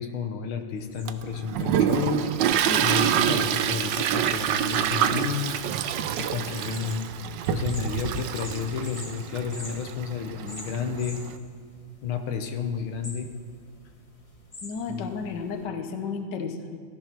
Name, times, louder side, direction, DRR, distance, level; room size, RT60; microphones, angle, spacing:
voice 1, 0.0-2.2 2.8-5.6 6.2-7.1 7.5-11.2 12.0-13.3 14.9-15.1, left 6 dB, 80° left, 5 dB, 1.8 m, -31 dB
sound 1, 0.8-15.7, left 2 dB, 20° left, 1.4 m, -48 dB
Toilet flush, 1.1-11.3, right 9 dB, 70° right, 1.3 m, -27 dB
voice 2, 14.6-16.8, left 5 dB, 60° left, 6 dB, 1.7 m, -33 dB
16.0 x 14.0 x 5.9 m, 2.1 s
omnidirectional pair, 2.2 m